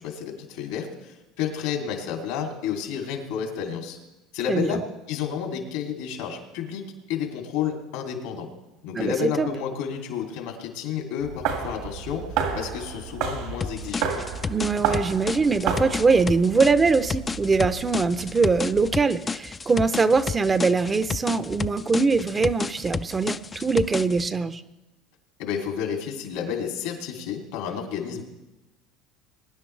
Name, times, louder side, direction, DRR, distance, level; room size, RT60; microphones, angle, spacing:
voice 1, 0.0-4.0 4.3-4.8 5.1-8.5 8.8-12.2 12.5-14.1 25.4-28.2, left 8 dB, 80° left, 2 dB, 2.9 m, -31 dB
voice 2, 8.9-9.5 14.5-24.6, right 4 dB, 25° right, 12 dB, 0.7 m, -22 dB
sound 1, 11.2-18.9, right 7 dB, 75° right, 2.1 m, -32 dB
sound 2, 13.6-24.3, left 5 dB, 25° left, 0.4 m, -31 dB
22.0 x 10.0 x 3.3 m, 1.0 s
supercardioid pair, 85°, 0 cm